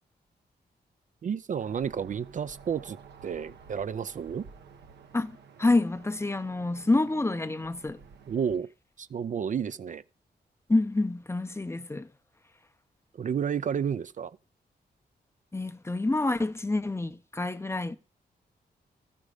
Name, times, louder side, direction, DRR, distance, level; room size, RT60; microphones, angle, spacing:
voice 1, 1.2-3.0 3.2-4.5 8.3-8.7 9.0-10.0 13.2-14.4, right 7 dB, 50° right, 0.4 m, -31 dB
sound 1, 1.6-8.6, right 6 dB, 85° right, 0.8 m, -51 dB
voice 2, 5.1-8.0 10.7-12.1 15.5-18.0, left 2 dB, 15° left, 0.5 m, -27 dB
13.0 x 5.2 x 4.9 m
cardioid pair, 75°, 17 cm